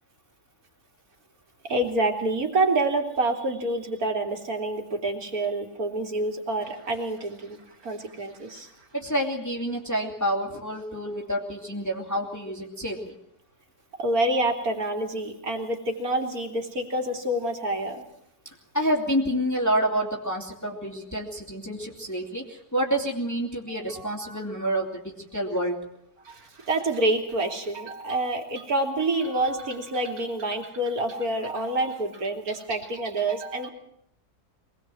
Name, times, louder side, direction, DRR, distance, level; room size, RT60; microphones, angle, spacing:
voice 1, 1.6-8.7 14.0-18.0 23.9-24.4 26.2-33.7, right 2 dB, 65° right, 3 dB, 3.4 m, -27 dB
voice 2, 8.9-13.1 18.7-25.8, equal, 10° left, -1 dB, 2.7 m, -28 dB
24.0 x 19.5 x 7.7 m, 0.75 s
omnidirectional pair, 1.7 m